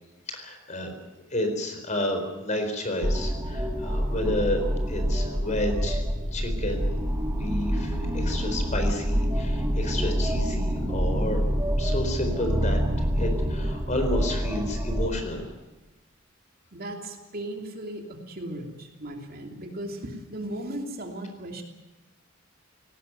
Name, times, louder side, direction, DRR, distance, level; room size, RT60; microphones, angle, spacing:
voice 1, 0.3-0.9 1.3-6.0 6.3-7.0 7.4-11.4 11.8-12.8 13.2-15.5, left 1 dB, 35° left, 6 dB, 4.2 m, -31 dB
sound 1, 3.0-15.1, equal, 15° right, 2.7 m, -27 dB
voice 2, 16.7-21.6, right 1 dB, 45° right, 3 dB, 3.0 m, -36 dB
18.0 x 18.0 x 9.3 m, 1.1 s
head